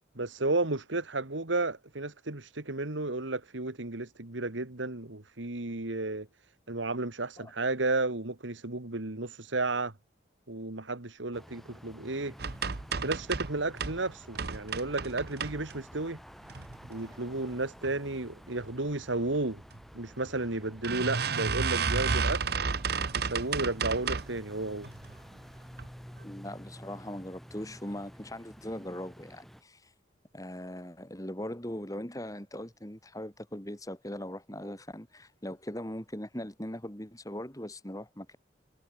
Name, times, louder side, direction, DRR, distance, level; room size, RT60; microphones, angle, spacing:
voice 1, 0.2-6.3 6.7-9.9 10.5-12.3 13.0-16.2 16.9-19.6 19.9-22.4 23.2-24.9, right 2 dB, 80° right, 2.1 m, -33 dB
sound 1, 11.3-29.6, equal, ahead, 4.9 m, -51 dB
sound 2, 12.4-14.0 14.3-16.0 16.4-17.1 17.5-17.9 18.2-18.3 18.6-18.7 19.7-19.8 20.2-20.3 20.8-24.4 24.8-25.3 25.7-25.9 26.2-26.3, right 5 dB, 55° right, 0.9 m, -32 dB
voice 2, 26.2-29.9 30.3-38.4, left 1 dB, 20° left, 2.8 m, -40 dB
head